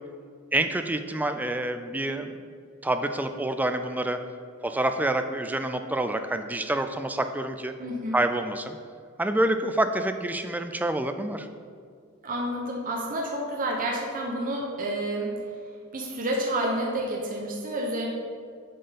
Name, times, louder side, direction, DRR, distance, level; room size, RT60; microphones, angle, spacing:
voice 1, 0.5-2.4 2.8-4.2 4.6-7.7 8.1-8.8 9.2-11.5, right 1 dB, 10° right, 8 dB, 0.3 m, -27 dB
voice 2, 7.8-8.2 12.2-15.3 15.9-18.1, right 1 dB, 40° right, -1 dB, 0.9 m, -29 dB
7.5 x 4.3 x 5.1 m, 2.1 s
head